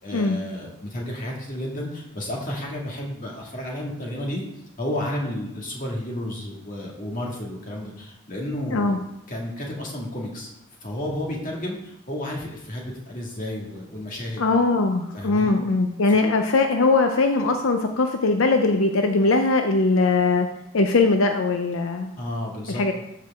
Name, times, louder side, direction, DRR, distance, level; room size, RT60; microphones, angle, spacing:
voice 1, 0.0-4.4 4.8-9.0 9.3-10.5 10.8-14.4 15.1-15.5 22.2-22.8, left 1 dB, 40° left, -2 dB, 2.0 m, -32 dB
voice 2, 14.4-20.5 20.7-22.1 22.7-22.9, left 3 dB, 80° left, 5 dB, 0.6 m, -20 dB
13.5 x 4.7 x 3.6 m, 0.84 s
head